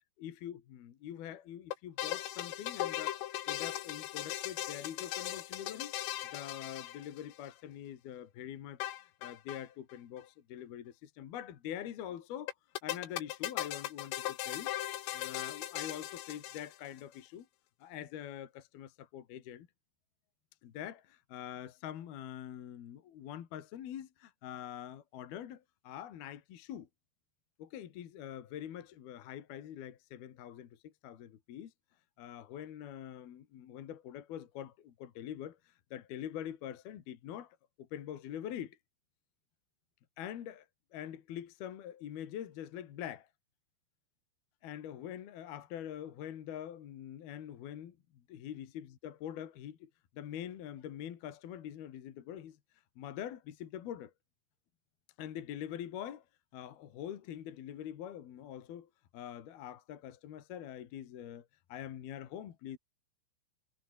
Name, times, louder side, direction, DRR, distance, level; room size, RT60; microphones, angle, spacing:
voice 1, 0.2-3.2 3.5-5.9 6.3-8.9 9.2-12.5 12.8-14.7 15.1-17.5 17.8-19.7 20.6-26.9 27.6-31.7 32.2-38.8 40.2-40.7 40.9-43.3 44.6-52.6 53.0-54.1 55.2-56.2 56.5-62.8, left 10 dB, 55° left, 3.5 m, -44 dB
sound 1, 1.7-7.5 8.8-9.7 9.9-10.0 10.2-10.3 12.5-17.0, left 15 dB, 80° left, 4.0 m, -38 dB
omnidirectional pair, 5.9 m